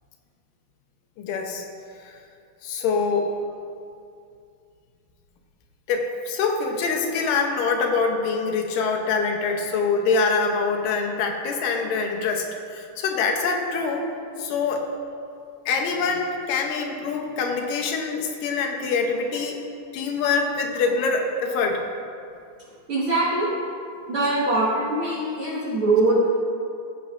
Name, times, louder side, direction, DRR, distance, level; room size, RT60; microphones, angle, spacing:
voice 1, 1.2-1.7 2.6-3.3 5.9-12.5 12.7-14.1 14.4-14.8 15.7-19.6 19.9-21.8, left 4 dB, 75° left, 2 dB, 2.4 m, -24 dB
voice 2, 22.9-23.5 24.1-26.3, right 2 dB, 55° right, -7 dB, 1.5 m, -22 dB
15.5 x 8.2 x 2.5 m, 2.4 s
omnidirectional pair, 4.0 m